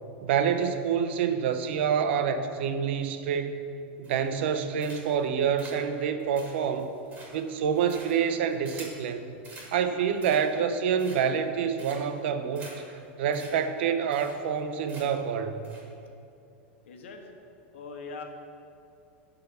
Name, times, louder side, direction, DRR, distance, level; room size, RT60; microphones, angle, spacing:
voice 1, 0.2-3.6 4.0-6.9 7.3-9.2 9.7-12.7 13.2-15.6, right 7 dB, 65° right, 8 dB, 0.7 m, -27 dB
sound 1, 4.0-4.5 4.8-5.2 5.6-9.0 9.4-9.7 10.1-10.6 11.0-11.4 11.8-12.2 12.5-12.7 13.0-13.1 13.3-13.5 13.8-13.9 14.1-14.6 14.9-15.3 15.6-15.8, right 2 dB, 25° right, 2.4 m, -47 dB
voice 2, 9.7-10.1 16.9-17.3 17.7-18.2, left 4 dB, 90° left, 3 dB, 1.2 m, -42 dB
11.0 x 4.1 x 6.9 m, 2.6 s
supercardioid pair, 155°, 6 cm